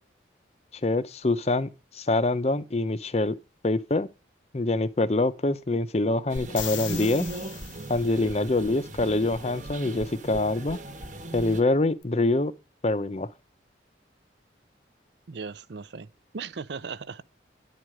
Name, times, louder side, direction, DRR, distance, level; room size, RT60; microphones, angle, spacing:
voice 1, 0.8-3.4 3.6-4.1 4.5-7.3 7.9-10.8 11.3-12.5 12.8-13.3, left 2 dB, 35° left, 0.6 m, -25 dB
sound 1, 6.3-11.6, right 2 dB, 40° right, 1.3 m, -38 dB
sound 2, 6.4-8.2 12.0-12.1, left 9 dB, 90° left, 1.1 m, -37 dB
voice 2, 15.3-16.1 16.3-17.2, right 5 dB, 65° right, 0.5 m, -37 dB
10.5 x 4.8 x 7.6 m
head